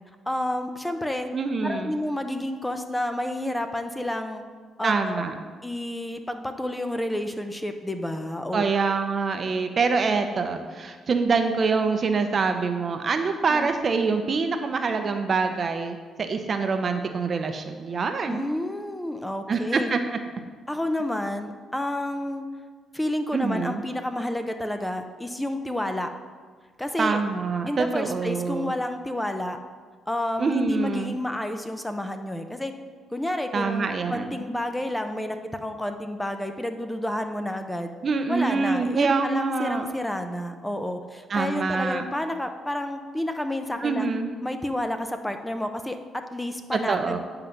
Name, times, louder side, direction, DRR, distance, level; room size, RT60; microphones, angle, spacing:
voice 1, 0.3-1.3 1.6-4.4 4.8-5.2 5.6-8.6 13.5-13.7 18.3-19.9 20.7-22.4 22.9-26.1 26.8-27.2 27.7-29.6 30.1-32.7 33.1-37.9 38.3-44.1 44.4-47.2, left 1 dB, 10° left, 7 dB, 0.6 m, -30 dB
voice 2, 1.3-2.0 4.8-5.4 8.5-18.5 19.5-20.0 23.3-23.8 27.0-28.7 30.4-31.2 33.5-34.4 38.0-39.9 41.3-42.0 43.8-44.3 46.7-47.2, right 4 dB, 45° right, 7 dB, 0.7 m, -25 dB
9.2 x 3.9 x 5.8 m, 1.5 s
cardioid pair, 90°, 0 cm